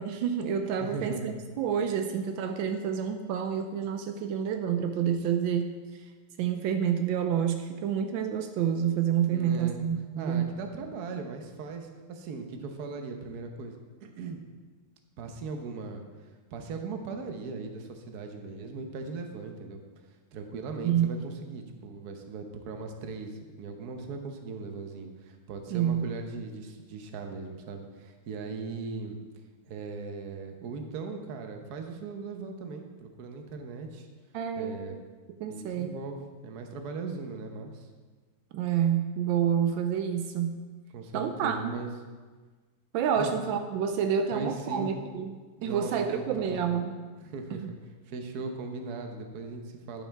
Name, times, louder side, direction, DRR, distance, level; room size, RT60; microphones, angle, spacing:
voice 1, 0.0-5.7 6.4-10.5 20.8-21.1 25.7-26.1 34.3-34.8 35.4-36.0 38.5-40.5 41.1-41.8 42.9-47.0 47.5-47.7, right 8 dB, 85° right, 7 dB, 1.3 m, -28 dB
voice 2, 0.8-1.3 9.3-9.8 10.2-14.4 15.2-16.0 16.5-19.8 20.3-29.2 29.6-34.1 34.6-35.0 35.5-37.9 40.9-41.9 43.2-43.4 44.3-45.0 45.6-46.7 47.2-47.8 48.1-50.0, right 4 dB, 60° right, 5 dB, 1.3 m, -39 dB
11.5 x 5.6 x 4.5 m, 1.4 s
omnidirectional pair, 2.1 m